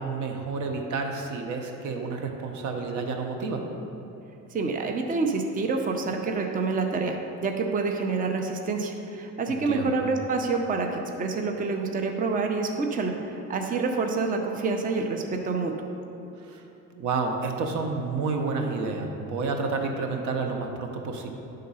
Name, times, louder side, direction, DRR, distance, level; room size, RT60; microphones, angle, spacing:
voice 1, 0.0-3.6 9.5-9.9 16.4-16.6 16.9-21.3, right 4 dB, 70° right, 4 dB, 0.9 m, -30 dB
voice 2, 4.5-15.7, right 4 dB, 25° right, 3 dB, 0.6 m, -27 dB
10.5 x 3.8 x 5.5 m, 3.0 s
cardioid pair, 110°, 31 cm